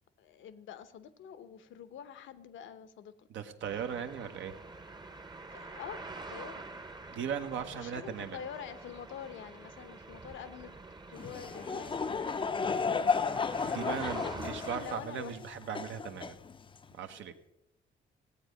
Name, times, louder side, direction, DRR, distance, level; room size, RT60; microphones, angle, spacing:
voice 1, 0.2-3.3 5.5-6.0 6.3-6.6 7.7-10.7 11.1-13.4 14.2-15.4, left 8 dB, 75° left, 12 dB, 0.9 m, -46 dB
voice 2, 3.3-4.5 7.1-8.4 13.6-16.3 16.9-17.3, right 7 dB, 75° right, 7 dB, 1.1 m, -38 dB
sound 1, 3.6-14.9, right 3 dB, 20° right, 0.8 m, -47 dB
Laughter / Crowd, 11.1-16.9, left 5 dB, 25° left, 0.5 m, -33 dB
16.5 x 8.4 x 5.1 m, 0.90 s
cardioid pair, 90°, 20 cm